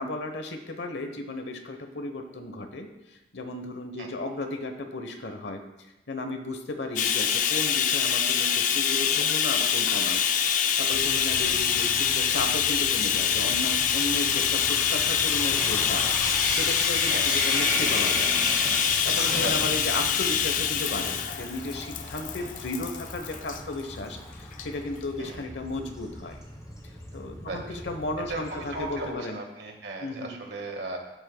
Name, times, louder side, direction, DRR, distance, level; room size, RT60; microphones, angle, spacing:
voice 1, 0.0-2.9 3.3-5.6 6.1-10.2 10.8-16.1 16.5-18.3 19.0-26.4 26.8-29.4 30.0-30.4, left 2 dB, 80° left, 6 dB, 1.0 m, -34 dB
Bathtub (filling or washing), 7.0-23.6 24.5-24.7 25.0-25.1, left 8 dB, 45° left, 0.4 m, -25 dB
Sink (filling or washing), 8.9-10.8 11.2-12.0 12.8-12.9 13.2-22.3 24.1-24.2 26.0-26.4 26.8-26.9 27.1-27.2, right 1 dB, 5° right, 2.3 m, -35 dB
Bicycle, 10.9-29.1, left 1 dB, 20° left, 0.9 m, -42 dB
voice 2, 28.3-31.0, right 2 dB, 70° right, 2 dB, 1.5 m, -36 dB
12.5 x 7.8 x 2.2 m, 0.98 s
head